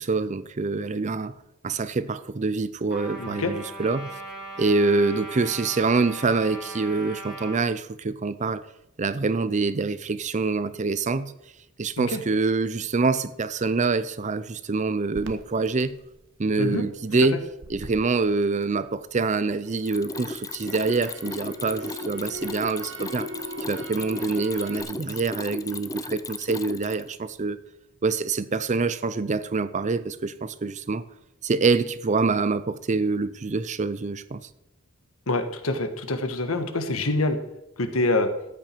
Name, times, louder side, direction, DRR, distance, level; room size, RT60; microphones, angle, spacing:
voice 1, 0.0-1.3 1.6-4.1 4.6-8.6 9.0-11.3 11.8-15.9 16.4-17.4 17.7-23.3 23.7-27.6 28.0-31.0 31.4-34.4, right 3 dB, 35° right, 0.5 m, -25 dB
Trumpet, 2.9-7.6, right 2 dB, 5° right, 3.3 m, -39 dB
voice 2, 3.2-3.5 12.0-12.2 16.6-16.8 17.2-17.3 35.3-37.4 37.8-38.3, left 2 dB, 85° left, 1.4 m, -25 dB
Crackle, 15.1-19.3 19.7-24.8, right 1 dB, 65° right, 1.2 m, -41 dB
Mechanisms, 19.7-27.1, left 3 dB, 15° left, 0.5 m, -35 dB
13.5 x 9.0 x 4.5 m
head